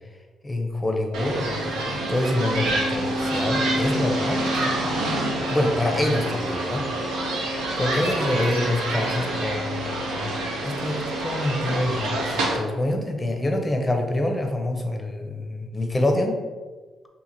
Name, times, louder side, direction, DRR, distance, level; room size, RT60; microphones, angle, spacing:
voice 1, 0.4-5.1 5.5-6.8 7.8-10.4 10.6-16.4, left 1 dB, 15° left, 3 dB, 0.6 m, -26 dB
sound 1, 1.1-12.6, right 1 dB, 85° right, 0.7 m, -27 dB
2.9 x 2.8 x 3.8 m, 1.4 s
cardioid pair, 90°, 0 cm